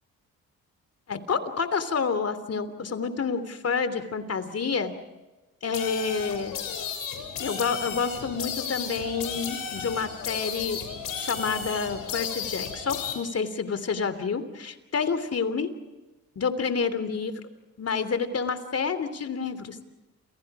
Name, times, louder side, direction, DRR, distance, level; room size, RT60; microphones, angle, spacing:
voice 1, 1.1-5.0 5.6-6.6 7.4-10.8 11.2-15.7 16.3-17.3 17.8-19.8, left 5 dB, 45° left, 11 dB, 3.2 m, -29 dB
sound 1, 5.7-13.1, left 7 dB, 75° left, 6.4 m, -34 dB
29.0 x 29.0 x 5.0 m, 1.2 s
cardioid pair, 75°, 35 cm